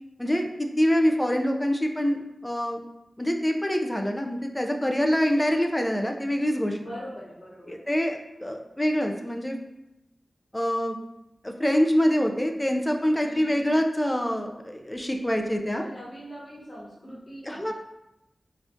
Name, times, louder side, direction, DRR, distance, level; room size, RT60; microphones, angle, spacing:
voice 1, 0.2-2.9 3.2-6.8 7.7-9.6 10.5-11.0 11.4-15.8 17.5-17.7, equal, 10° left, 4 dB, 0.3 m, -25 dB
voice 2, 6.8-7.9 13.2-13.6 15.8-17.7, equal, 45° left, -7 dB, 1.0 m, -42 dB
3.5 x 2.3 x 2.6 m, 0.89 s
wide cardioid pair, 110°, 0 cm